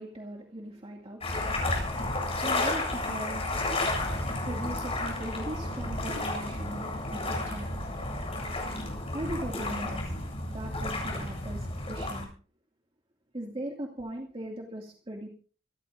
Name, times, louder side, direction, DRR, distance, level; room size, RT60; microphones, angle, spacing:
voice 1, 0.0-1.7 2.1-3.6 4.5-7.7 9.1-10.1 10.5-12.3 13.3-15.3, right 1 dB, 30° right, 0 dB, 2.4 m, -39 dB
sound 1, 1.2-12.2, left 2 dB, 30° left, 7.7 m, -32 dB
27.0 x 13.0 x 2.7 m, 0.40 s
head